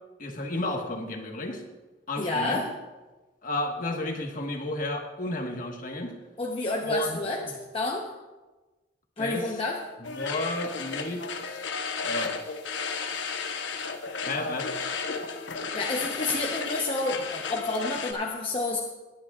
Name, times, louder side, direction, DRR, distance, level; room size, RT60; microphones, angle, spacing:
voice 1, 0.2-1.6 2.1-2.6 3.4-6.1 6.8-7.2 7.4-7.6 9.2-9.5 10.1-11.7 12.0-12.3 14.2-14.7, left 2 dB, 50° left, 2 dB, 1.4 m, -32 dB
voice 2, 2.2-2.7 6.4-7.4 7.7-8.1 9.2-9.8 15.7-18.8, left 2 dB, 30° left, -1 dB, 0.9 m, -29 dB
Tunning Radio, 10.0-18.1, left 5 dB, 85° left, 1.0 m, -33 dB
19.0 x 10.0 x 2.4 m, 1.2 s
head